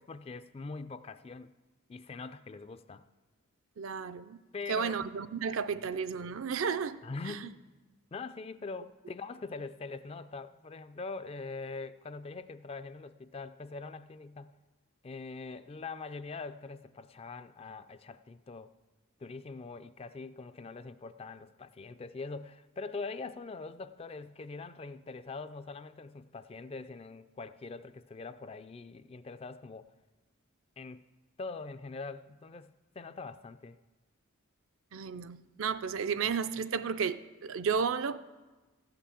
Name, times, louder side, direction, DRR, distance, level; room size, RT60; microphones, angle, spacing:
voice 1, 0.0-1.5 1.9-3.0 4.5-5.0 7.0-7.6 8.1-14.5 15.0-18.7 19.2-29.9 30.8-31.1 31.4-33.8, left 4 dB, 25° left, 0.3 m, -43 dB
voice 2, 3.8-4.4 4.7-7.0 34.9-38.2, right 6 dB, 65° right, 0.5 m, -33 dB
14.5 x 5.9 x 8.3 m
head